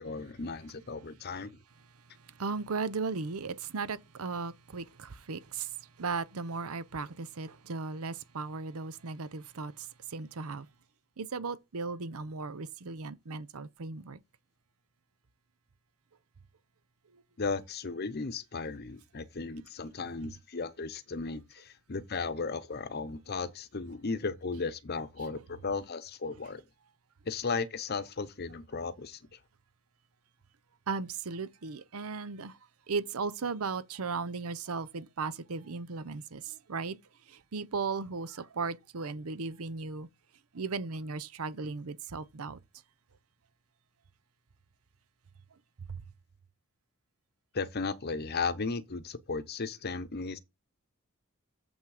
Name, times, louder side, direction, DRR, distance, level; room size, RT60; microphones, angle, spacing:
voice 1, 0.0-1.5 17.4-26.6 27.3-29.2 47.5-50.4, left 4 dB, 45° left, 0.8 m, -35 dB
voice 2, 2.4-5.7 6.0-10.7 11.2-14.2 30.9-32.5 32.9-37.0 37.3-40.1 40.5-42.6 45.9-46.0, right 4 dB, 85° right, 0.7 m, -36 dB
7.2 x 6.0 x 4.9 m
head